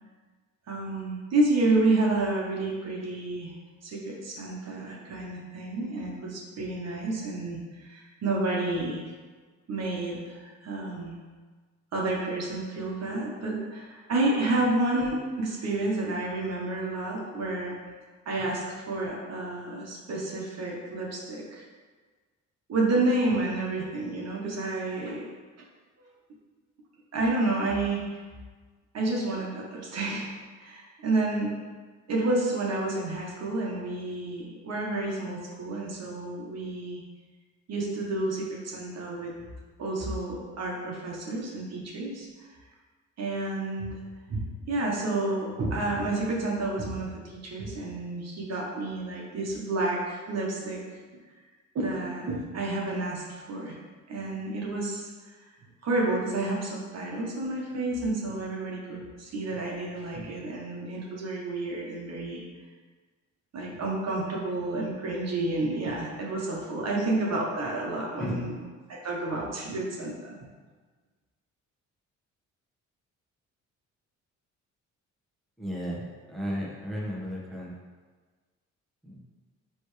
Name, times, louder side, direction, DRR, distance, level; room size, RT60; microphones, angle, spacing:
voice 1, 0.7-3.6 3.8-9.0 9.7-11.2 11.9-17.8 18.2-21.6 22.7-25.3 27.1-28.2 28.9-30.3 30.6-31.6 32.1-37.0 37.7-39.4 39.8-42.5 43.2-43.9 44.3-50.8 51.7-53.8 54.1-55.3 55.8-62.4 63.5-70.4, right 2 dB, 60° right, -2 dB, 1.4 m, -30 dB
voice 2, 75.6-76.0 76.3-77.7 79.0-79.2, equal, ahead, -5 dB, 1.6 m, -34 dB
9.7 x 3.3 x 3.3 m, 1.4 s
cardioid pair, 90°, 30 cm